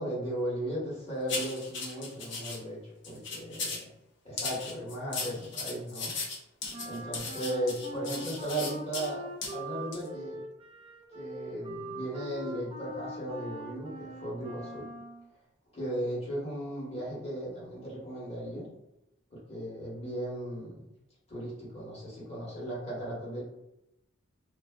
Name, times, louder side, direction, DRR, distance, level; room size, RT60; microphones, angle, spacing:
voice 1, 0.0-3.9 4.2-6.1 6.8-10.4 11.1-14.9 15.7-18.7 19.3-20.8 21.3-23.4, right 1 dB, 30° left, -7 dB, 1.1 m, -36 dB
sound 1, 1.3-2.6 3.0-3.9 4.4-9.1 9.4-9.5 9.9-10.1, left 3 dB, 60° left, 0.5 m, -37 dB
Wind instrument woodwind instrument, 6.7-15.3, right 1 dB, 25° right, 0.3 m, -42 dB
2.4 x 2.3 x 2.2 m, 0.87 s
head